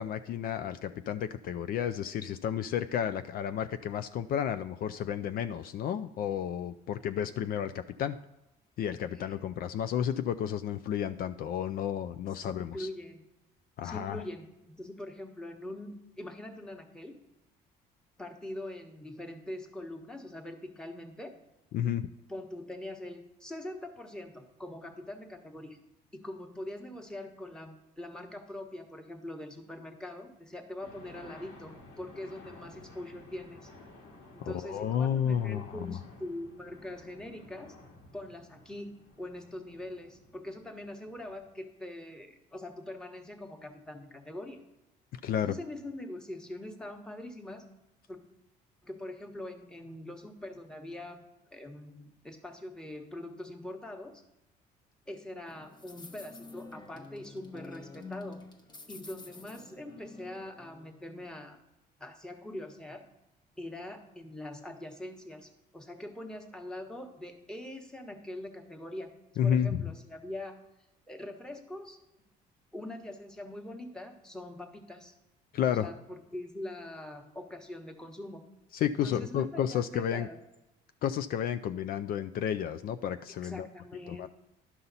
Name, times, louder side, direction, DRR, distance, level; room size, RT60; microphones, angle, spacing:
voice 1, 0.0-8.2 8.8-12.9 13.8-14.2 21.7-22.1 34.4-36.0 45.1-45.6 69.4-69.8 75.5-75.9 78.7-80.3 81.0-83.7 84.1-84.3, left 9 dB, 60° left, 10 dB, 0.4 m, -32 dB
voice 2, 12.4-13.2 13.8-17.2 18.2-21.3 22.3-25.8 26.1-33.7 34.3-37.7 38.1-44.6 45.4-47.6 48.1-48.2 48.8-51.2 51.5-54.2 55.1-58.4 58.9-61.6 62.0-63.0 63.6-69.1 69.4-70.6 71.1-72.0 72.7-75.1 75.8-78.4 79.0-80.4 83.4-84.3, left 1 dB, 5° left, 4 dB, 1.1 m, -43 dB
sound 1, 30.8-41.5, left 2 dB, 90° left, 1.9 m, -54 dB
sound 2, 55.5-61.3, left 3 dB, 25° left, 0.8 m, -48 dB
11.5 x 5.6 x 4.0 m, 0.96 s
cardioid pair, 110°, 17 cm